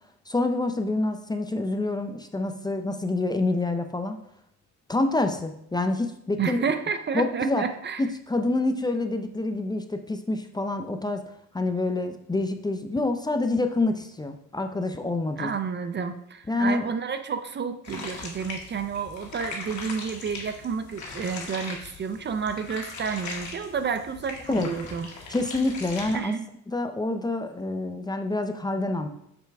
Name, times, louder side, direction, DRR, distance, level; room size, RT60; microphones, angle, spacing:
voice 1, 0.3-4.2 4.9-6.6 7.1-7.7 8.0-11.2 11.5-15.5 16.5-16.9 24.5-24.7 25.3-26.3 26.7-29.1, left 2 dB, 15° left, 6 dB, 0.5 m, -27 dB
voice 2, 6.4-8.0 15.4-25.1 26.1-26.4, right 6 dB, 35° right, 9 dB, 0.5 m, -30 dB
sound 1, 17.8-26.2, left 3 dB, 70° left, 1.7 m, -39 dB
6.8 x 4.5 x 3.4 m, 0.75 s
cardioid pair, 90°, 30 cm